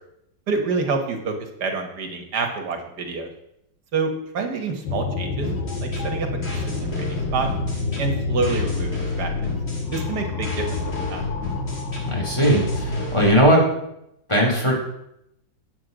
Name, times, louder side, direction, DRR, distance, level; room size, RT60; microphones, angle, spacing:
voice 1, 0.5-1.3 1.6-3.3 3.9-5.5 5.8-6.3 7.0-7.5 8.0-9.5 9.9-11.2, right 4 dB, 60° right, 4 dB, 1.9 m, -27 dB
sound 1, 4.8-13.1, left 3 dB, 75° left, 1.7 m, -28 dB
sound 2, 5.4-13.4, left 2 dB, 35° left, 2.3 m, -34 dB
voice 2, 12.0-13.6 14.3-14.7, equal, 15° left, -2 dB, 2.4 m, -18 dB
8.6 x 8.0 x 5.0 m, 0.80 s
omnidirectional pair, 2.1 m